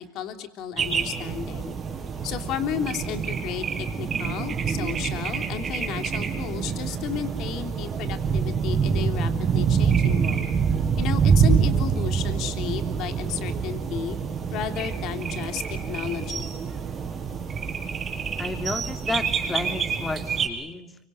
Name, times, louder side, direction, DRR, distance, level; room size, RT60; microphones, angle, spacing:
voice 1, 0.0-1.7 2.2-10.5 11.0-14.2 14.5-16.5, left 9 dB, 55° left, 7 dB, 3.3 m, -33 dB
sound 1, 0.8-20.5, right 6 dB, 30° right, 5.9 m, -26 dB
voice 2, 18.4-21.0, left 3 dB, 15° left, 8 dB, 2.6 m, -32 dB
25.0 x 24.5 x 9.5 m, 0.87 s
supercardioid pair, 125°, 0 cm